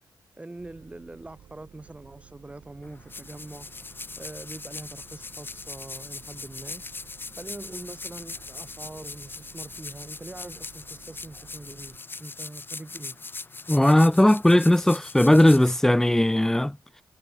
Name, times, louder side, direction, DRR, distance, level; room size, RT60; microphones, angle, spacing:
voice 1, 0.4-3.7 4.2-7.0 7.4-13.2, right 2 dB, 15° right, 3.4 m, -43 dB
sound 1, 0.6-12.0, right 9 dB, 75° right, 4.8 m, -54 dB
sound 2, 2.8-16.4, left 3 dB, 25° left, 2.0 m, -40 dB
voice 2, 13.7-16.8, left 1 dB, 5° left, 0.6 m, -18 dB
cardioid pair, 105°, 8 cm